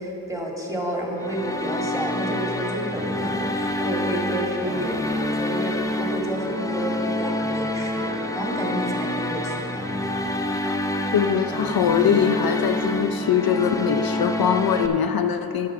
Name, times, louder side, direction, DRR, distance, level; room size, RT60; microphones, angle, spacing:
voice 1, 0.0-9.8, equal, 10° right, -2 dB, 2.0 m, -30 dB
sound 1, 1.2-14.9, left 1 dB, 10° left, 0.6 m, -27 dB
voice 2, 11.1-15.7, left 8 dB, 70° left, 7 dB, 0.5 m, -22 dB
10.5 x 6.5 x 5.9 m, 2.9 s
cardioid pair, 60°, 37 cm